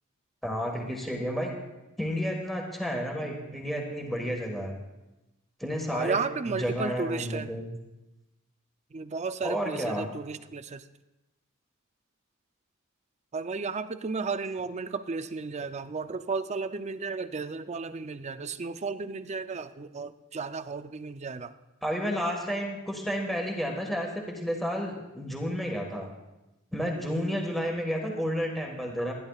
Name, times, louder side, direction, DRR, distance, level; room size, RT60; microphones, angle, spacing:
voice 1, 0.4-1.5 2.0-4.8 5.6-6.2 6.5-7.7 9.4-10.1 16.0-16.1 21.8-26.1 26.7-29.1, equal, ahead, 0 dB, 1.6 m, -31 dB
voice 2, 5.9-7.5 8.9-10.8 13.3-21.5, right 4 dB, 30° right, 11 dB, 0.5 m, -33 dB
28.0 x 10.5 x 2.4 m, 1.0 s
head